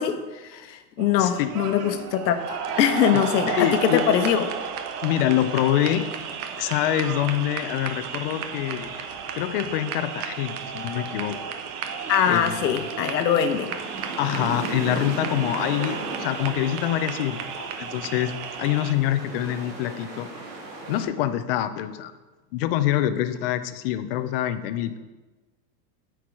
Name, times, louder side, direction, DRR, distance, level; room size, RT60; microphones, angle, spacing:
voice 1, 0.0-4.5 12.1-13.8, left 9 dB, 85° left, 8 dB, 1.0 m, -23 dB
sound 1, 1.0-18.9, right 7 dB, 65° right, 0.9 m, -33 dB
voice 2, 1.2-1.5 3.5-4.0 5.0-6.1 6.6-9.1 9.3-11.4 12.2-12.9 14.2-18.3 18.6-20.3 20.9-22.1 22.5-25.0, left 12 dB, 40° left, 11 dB, 0.4 m, -25 dB
sound 2, 6.3-21.0, right 3 dB, 85° right, 2.3 m, -38 dB
8.1 x 4.7 x 4.7 m, 1.2 s
supercardioid pair, 140°, 49 cm